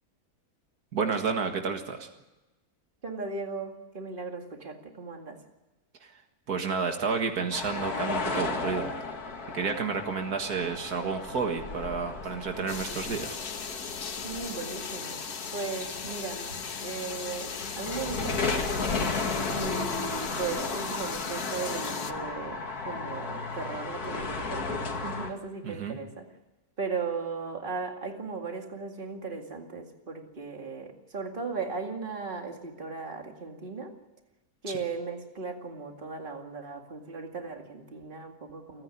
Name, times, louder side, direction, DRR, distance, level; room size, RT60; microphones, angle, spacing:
voice 1, 0.9-2.1 6.5-8.9 9.5-13.4 25.6-26.0, right 5 dB, 85° right, 5 dB, 2.2 m, -30 dB
voice 2, 3.0-5.4 14.2-15.2 15.5-16.5 16.8-19.2 19.5-26.3 26.8-33.9 34.6-38.8, right 4 dB, 35° right, 3 dB, 2.3 m, -37 dB
sound 1, 7.5-25.3, left 4 dB, 85° left, 2.5 m, -34 dB
sound 2, 12.7-22.1, left 6 dB, 45° left, 0.9 m, -38 dB
29.0 x 9.9 x 10.0 m, 1.1 s
omnidirectional pair, 1.6 m